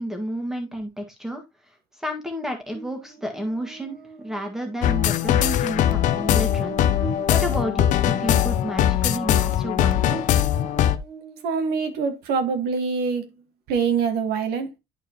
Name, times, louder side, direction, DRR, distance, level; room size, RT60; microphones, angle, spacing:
voice 1, 0.0-1.4 2.0-6.8 7.3-10.2, equal, 5° right, 1.7 m, -31 dB
Buzz, 2.7-12.2, right 4 dB, 40° right, 1.6 m, -42 dB
sound 1, 4.8-11.0, left 11 dB, 50° left, 0.6 m, -21 dB
voice 2, 11.4-13.3 13.7-14.7, right 5 dB, 70° right, 1.8 m, -24 dB
10.5 x 4.5 x 3.0 m
cardioid pair, 170°, 17 cm